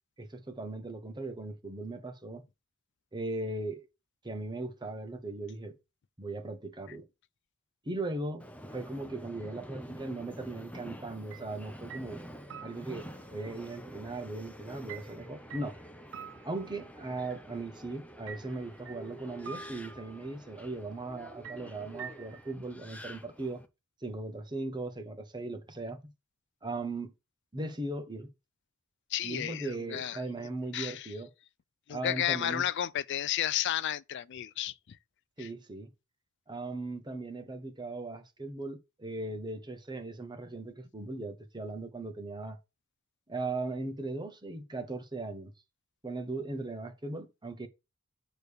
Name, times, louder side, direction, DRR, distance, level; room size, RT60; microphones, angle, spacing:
voice 1, 0.2-2.4 3.1-3.9 4.2-5.7 6.2-7.0 7.8-8.4 8.7-12.2 12.6-15.8 16.4-23.6 24.0-26.0 26.6-27.1 27.5-28.3 29.2-31.3 31.9-32.6 35.4-35.9 36.5-42.6 43.3-45.5 46.0-47.7, right 2 dB, 20° right, 1.2 m, -38 dB
Subway metro underground, 8.4-23.7, equal, 5° left, 0.8 m, -48 dB
sound 1, 11.3-11.5 11.9-13.3 14.9-17.2 18.3-19.1 19.4-20.3 21.4-22.5, right 6 dB, 65° right, 0.7 m, -47 dB
voice 2, 29.1-30.2 30.7-31.1 31.9-35.0 35.4-35.5, left 11 dB, 55° left, 0.4 m, -32 dB
9.1 x 3.3 x 6.5 m
head